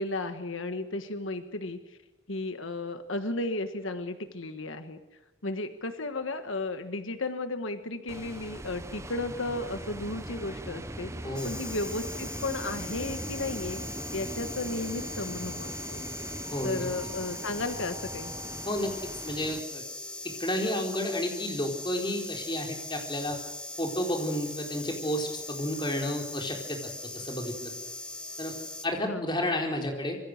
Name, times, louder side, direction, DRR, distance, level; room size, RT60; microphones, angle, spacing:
voice 1, 0.0-2.0 2.3-5.0 5.4-11.1 11.4-13.8 14.1-16.1 16.6-18.3 29.0-29.4, left 2 dB, 80° left, 8 dB, 1.5 m, -34 dB
sound 1, 8.1-19.6, right 1 dB, 15° right, 0.9 m, -40 dB
sound 2, 11.3-28.9, left 2 dB, 5° left, 1.2 m, -40 dB
voice 2, 16.5-16.9 18.7-18.9 19.2-19.8 20.4-23.4 23.8-27.7 28.4-28.5 28.8-30.2, left 1 dB, 25° left, 2 dB, 4.1 m, -31 dB
26.0 x 22.5 x 6.6 m, 1.0 s
head